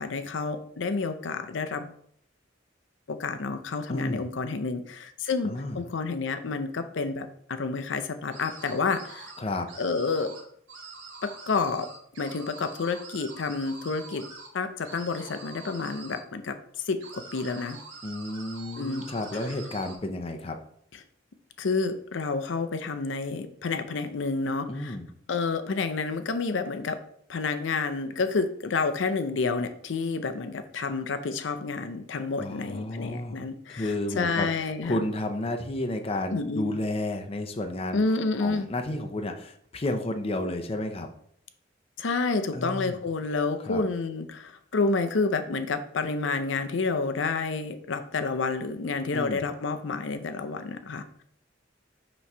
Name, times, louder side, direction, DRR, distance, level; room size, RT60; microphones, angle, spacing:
voice 1, 0.0-1.9 3.1-9.3 9.8-10.3 11.2-11.9 12.2-14.2 14.5-16.6 16.8-17.8 18.8-19.0 21.6-25.0 25.3-27.0 27.3-35.0 36.3-36.8 37.9-38.7 42.0-51.2, left 4 dB, 75° left, 9 dB, 0.5 m, -29 dB
voice 2, 3.9-4.3 5.4-5.8 9.4-9.7 18.0-20.6 24.7-25.1 32.4-33.4 33.7-34.5 34.8-38.0 38.4-41.1 42.5-43.0 43.6-43.8 49.1-49.4, left 1 dB, 30° left, 5 dB, 0.5 m, -31 dB
sound 1, 8.3-9.4 9.7-10.4 10.7-14.5 14.8-16.2 17.0-20.0, right 3 dB, 85° right, 1.6 m, -45 dB
5.8 x 3.1 x 5.5 m, 0.64 s
head